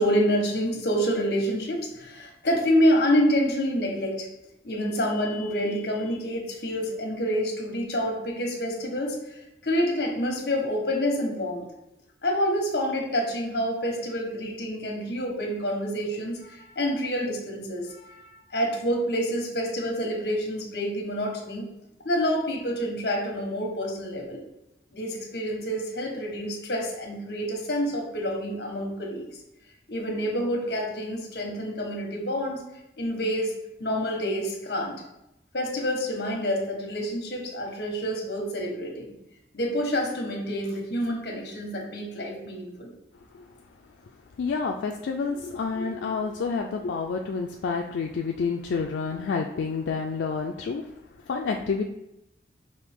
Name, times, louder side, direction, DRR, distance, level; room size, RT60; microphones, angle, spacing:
voice 1, 0.0-4.3 4.6-9.4 9.6-11.6 12.2-21.7 22.0-24.4 24.9-29.2 29.9-32.6 33.0-33.5 33.8-34.9 35.5-39.1 39.5-42.9, equal, 65° left, 0 dB, 1.2 m, -27 dB
voice 2, 44.4-50.8 51.3-51.8, left 5 dB, 85° left, 2 dB, 0.3 m, -29 dB
5.2 x 2.7 x 3.5 m, 0.88 s
head